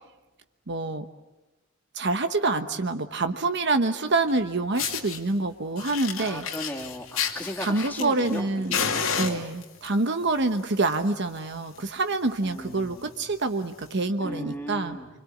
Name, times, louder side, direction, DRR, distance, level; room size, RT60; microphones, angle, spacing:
voice 1, 0.7-1.1 1.9-6.4 7.6-8.8 9.1-15.0, right 3 dB, 60° right, 8 dB, 1.1 m, -26 dB
Fire, 4.3-4.4 4.8-5.2 5.8-8.4 8.7-9.9 10.7-11.0 11.3-11.4 11.8-11.9 12.1-12.3 12.9-13.0 13.9-14.0, left 7 dB, 85° left, 2.4 m, -30 dB
voice 2, 6.2-8.9 9.2-9.4 12.4-13.2 14.2-15.1, equal, 10° left, 0 dB, 2.9 m, -36 dB
25.5 x 25.5 x 8.5 m, 1.1 s
head